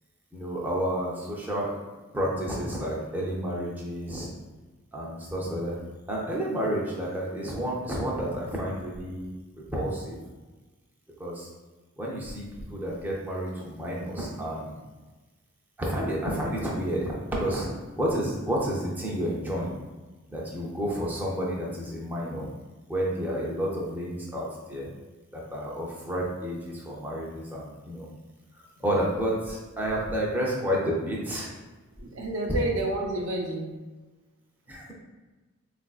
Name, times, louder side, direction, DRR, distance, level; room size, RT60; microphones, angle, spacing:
voice 1, 0.3-1.7 2.1-4.3 4.9-5.8 6.1-9.3 9.7-10.2 11.2-11.5 12.0-14.7 15.8-17.1 17.4-17.7 18.0-19.7 20.3-22.5 22.9-24.9 25.3-28.1 28.8-31.5 34.7-34.9, equal, 10° right, -4 dB, 0.5 m, -30 dB
voice 2, 32.0-33.8, right 1 dB, 65° right, 0 dB, 0.5 m, -30 dB
3.7 x 2.5 x 2.3 m, 1.2 s
head